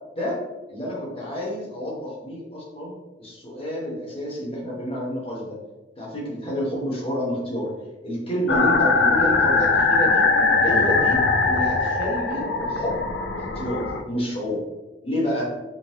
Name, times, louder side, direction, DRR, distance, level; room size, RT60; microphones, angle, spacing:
voice 1, 0.7-2.9 3.2-5.6 6.0-7.7 8.0-10.2 10.6-13.1 13.3-14.6 15.0-15.5, equal, 30° left, -4 dB, 1.2 m, -29 dB
sound 1, 8.5-14.0, left 3 dB, 75° left, 0.4 m, -21 dB
5.1 x 2.2 x 3.1 m, 1.1 s
head